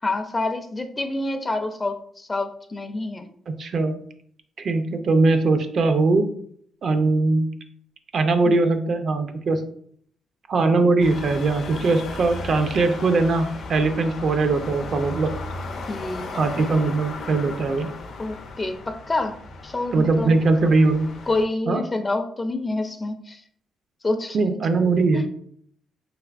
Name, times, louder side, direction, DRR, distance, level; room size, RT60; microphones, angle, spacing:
voice 1, 0.0-3.3 8.5-8.7 15.9-16.3 18.2-19.4 19.6-20.4 21.3-23.4 24.0-24.4 25.1-25.2, left 2 dB, 25° left, 7 dB, 0.4 m, -27 dB
voice 2, 3.5-4.0 4.6-6.3 6.8-7.5 8.1-9.6 10.5-15.3 16.3-17.9 19.9-21.1 21.7-21.8 24.3-25.3, right 3 dB, 55° right, 7 dB, 0.4 m, -21 dB
sound 1, 11.0-21.4, left 3 dB, 70° left, 0.6 m, -36 dB
3.3 x 3.2 x 2.4 m, 0.63 s
cardioid pair, 90°, 0 cm